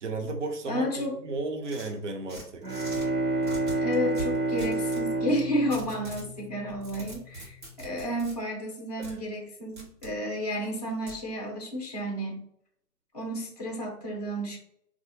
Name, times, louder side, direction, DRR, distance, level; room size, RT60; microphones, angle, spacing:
voice 1, 0.0-2.6 9.0-9.1, right 3 dB, 50° right, 3 dB, 0.7 m, -34 dB
voice 2, 0.7-1.2 3.8-12.4 13.1-14.6, equal, 25° left, 1 dB, 0.5 m, -31 dB
sound 1, 1.6-3.1 3.4-5.1 5.7-6.3 6.7-8.3 9.0-9.1 9.8-10.1 11.1-11.2, right 2 dB, 30° right, 1.3 m, -42 dB
Bowed string instrument, 2.4-7.1, right 2 dB, 75° right, 1.2 m, -30 dB
4.1 x 2.4 x 2.6 m, 0.72 s
figure-of-eight pair, 145°, 47 cm